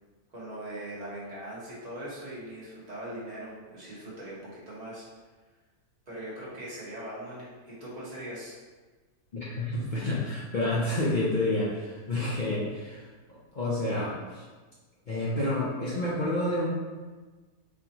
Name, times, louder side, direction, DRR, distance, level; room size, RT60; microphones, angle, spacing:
voice 1, 0.3-5.0 6.1-8.5, right 1 dB, 30° right, -8 dB, 1.1 m, -40 dB
voice 2, 9.3-14.4 15.1-16.7, left 1 dB, 65° left, -7 dB, 0.4 m, -29 dB
4.2 x 2.8 x 2.8 m, 1.3 s
omnidirectional pair, 1.6 m